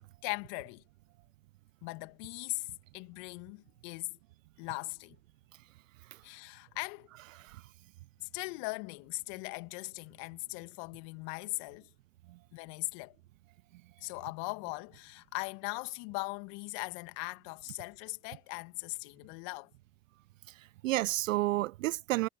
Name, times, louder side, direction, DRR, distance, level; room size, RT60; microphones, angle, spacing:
voice 1, 0.2-0.8 1.8-2.7 2.9-4.2 4.6-5.2 6.2-7.1 8.2-11.9 12.5-13.2 14.0-19.7, left 31 dB, 45° left, 2.3 m, -39 dB
voice 2, 20.5-22.3, right 17 dB, 55° right, 0.5 m, -31 dB
hypercardioid pair, 100°, 50 cm